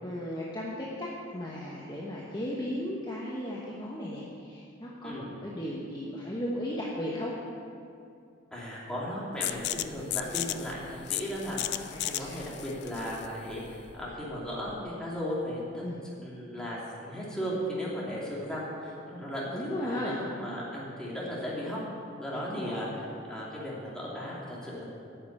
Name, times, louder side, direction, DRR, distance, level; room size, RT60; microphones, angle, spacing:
voice 1, 0.0-7.3 9.8-9.9 11.9-12.4 15.8-16.0 19.5-20.2 22.3-23.0, equal, 20° left, -5 dB, 1.1 m, -36 dB
voice 2, 8.5-15.8 16.2-21.8 22.2-24.9, equal, 5° left, -7 dB, 2.7 m, -36 dB
sound 1, 9.4-14.9, left 13 dB, 55° left, 0.4 m, -36 dB
10.0 x 6.7 x 8.6 m, 2.5 s
head